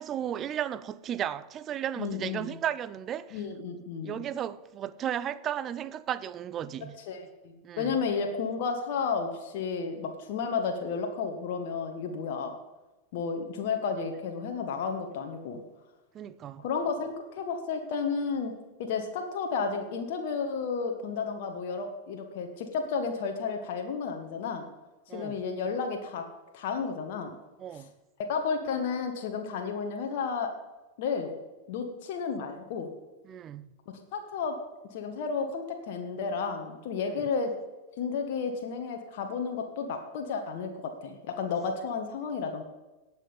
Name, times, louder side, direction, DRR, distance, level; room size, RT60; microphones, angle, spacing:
voice 1, 0.0-3.4 4.0-7.0 7.6-8.0 16.1-16.7 25.1-25.4 27.6-27.9 33.2-33.7 37.0-37.2, right 10 dB, 30° right, 0.5 m, -34 dB
voice 2, 2.0-2.5 3.3-4.2 7.1-12.5 13.1-15.6 16.6-18.5 18.8-24.7 25.1-26.2 26.5-27.3 27.7-27.8 28.3-30.5 31.0-31.3 31.7-32.9 34.1-34.5 34.9-37.5 38.0-42.6, left 5 dB, 50° left, 1.4 m, -32 dB
18.0 x 6.2 x 5.2 m
figure-of-eight pair, 90°, 0 cm